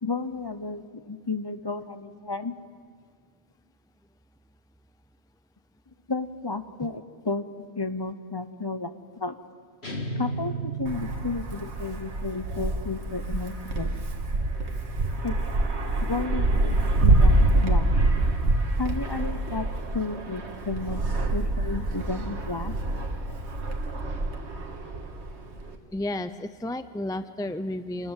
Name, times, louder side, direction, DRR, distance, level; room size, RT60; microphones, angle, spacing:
voice 1, 0.0-2.5 6.1-8.9 9.2-9.4 10.2-14.0 15.2-15.3 16.1-18.1 18.8-19.7 19.9-22.7, left 3 dB, 25° left, 10 dB, 0.8 m, -32 dB
sound 1, 9.8-11.9, right 2 dB, 70° left, 2.8 m, -33 dB
Wind, 10.9-25.8, right 2 dB, 90° right, 1.9 m, -26 dB
voice 2, 25.9-28.1, left 1 dB, 5° left, 11 dB, 0.3 m, -32 dB
26.5 x 20.0 x 7.5 m, 2.1 s
omnidirectional pair, 1.1 m